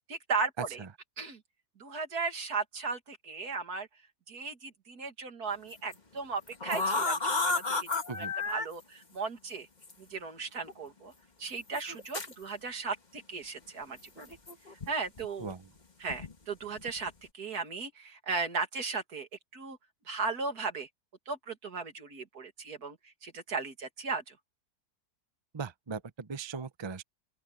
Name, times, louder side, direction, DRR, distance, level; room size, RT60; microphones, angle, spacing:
voice 1, 0.1-0.8 1.2-1.4 1.8-3.9 4.3-7.9 8.1-9.7 10.0-11.1 11.4-14.4 14.9-15.5 16.0-19.8 20.1-20.9 21.3-24.4, right 4 dB, 80° right, 2.8 m, -36 dB
sound 1, 5.7-5.9 6.5-8.7 9.8-9.9 10.7-10.8 11.7-12.3 14.2-14.9 15.2-15.5 16.1-16.3 16.7-17.1, left 3 dB, 30° left, 1.7 m, -32 dB
voice 2, 25.5-27.0, right 5 dB, 25° right, 0.6 m, -39 dB
open air
omnidirectional pair, 1.6 m